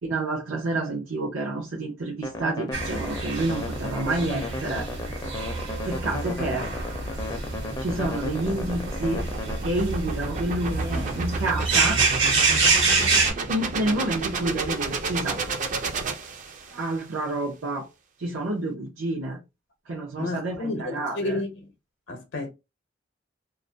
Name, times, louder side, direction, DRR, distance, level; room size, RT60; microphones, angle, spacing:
voice 1, 0.0-4.9 5.8-6.7 7.8-9.3 9.6-12.0 13.5-15.4 16.7-17.9 18.2-19.4 19.9-21.4, right 2 dB, 90° right, 0.6 m, -29 dB
sound 1, 2.2-9.6, left 2 dB, 20° left, 0.4 m, -35 dB
sound 2, 2.7-13.3, right 4 dB, 70° right, 1.0 m, -27 dB
sound 3, 6.6-16.9, right 3 dB, 40° right, 0.4 m, -31 dB
voice 2, 20.2-21.7 22.1-22.5, left 2 dB, 65° left, 0.6 m, -31 dB
2.3 x 2.1 x 2.5 m
head